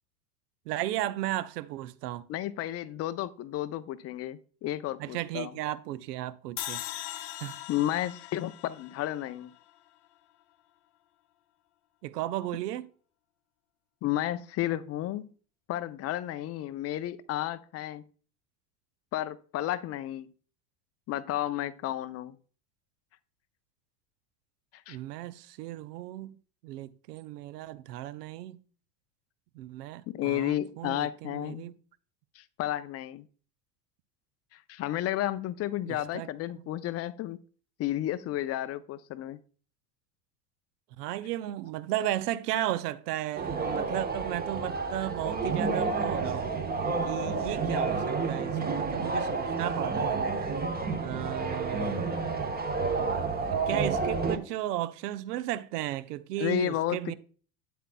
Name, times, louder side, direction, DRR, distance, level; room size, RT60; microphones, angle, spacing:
voice 1, 0.7-2.3 5.0-6.8 7.4-7.6 12.0-12.9 24.9-26.3 26.6-28.6 29.5-31.7 35.8-36.3 41.0-46.6 47.0-50.2 51.0-52.1 53.4-57.1, right 14 dB, 70° right, 0.7 m, -35 dB
voice 2, 2.3-5.5 7.7-9.5 14.0-15.3 15.7-18.0 19.1-20.3 21.1-22.4 24.9-25.0 30.1-31.7 32.3-33.3 34.5-37.4 37.8-39.4 56.4-57.1, left 13 dB, 30° left, 0.5 m, -32 dB
sound 1, 6.6-9.8, left 14 dB, 60° left, 1.0 m, -40 dB
sound 2, 43.4-54.4, right 4 dB, 20° right, 0.9 m, -30 dB
9.3 x 7.9 x 2.2 m
hypercardioid pair, 90°, 49 cm